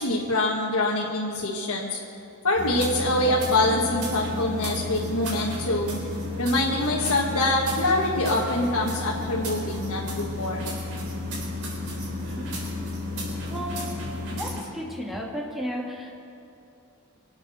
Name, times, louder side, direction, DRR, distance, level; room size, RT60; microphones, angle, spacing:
voice 1, 0.0-2.0 2.4-6.0 6.4-10.6, left 2 dB, 70° left, -4 dB, 1.7 m, -25 dB
sound 1, 2.6-14.6, left 2 dB, 85° right, 3.9 m, -32 dB
voice 2, 14.8-15.8, equal, ahead, -3 dB, 2.2 m, -32 dB
24.5 x 8.5 x 6.4 m, 2.7 s
head